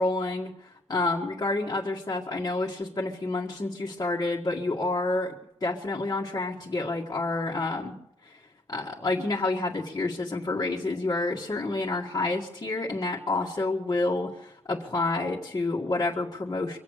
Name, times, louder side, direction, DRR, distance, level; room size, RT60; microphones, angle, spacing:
voice 1, 0.0-8.0 8.2-8.4 8.7-14.3 14.7-16.8, left 2 dB, 30° left, -4 dB, 1.9 m, -29 dB
25.0 x 8.4 x 6.6 m, 0.74 s
wide cardioid pair, 140°, 11 cm